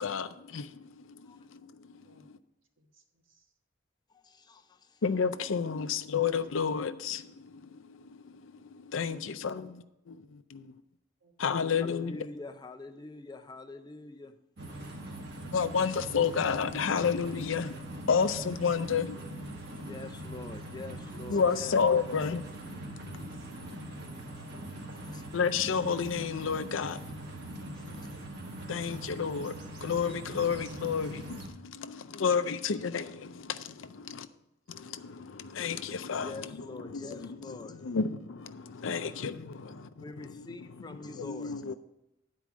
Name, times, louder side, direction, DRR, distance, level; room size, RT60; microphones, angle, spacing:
voice 1, 0.0-2.2 5.0-8.3 8.6-10.7 11.4-12.2 15.5-19.8 21.3-22.4 25.3-27.0 28.7-29.5 29.8-34.3 34.7-36.3 36.9-37.3 37.7-40.0 40.4-40.5 41.1-41.7, left 6 dB, 75° left, 0.5 m, -31 dB
voice 2, 2.8-3.5 11.2-11.6 15.4-15.5 23.0-23.9 28.7-29.0 33.3-33.4 33.9-34.4 37.7-37.9 39.0-39.2 39.6-39.9, right 1 dB, 70° right, 1.3 m, -62 dB
voice 3, 4.1-5.0 9.1-9.3 11.8-14.4 19.8-21.8 22.0-22.2 25.0-25.2 27.8-28.2 36.2-37.9 40.0-41.6, left 3 dB, 20° left, 0.5 m, -45 dB
sound 1, 14.6-31.5, right 1 dB, 55° right, 1.5 m, -42 dB
10.5 x 4.6 x 6.1 m
head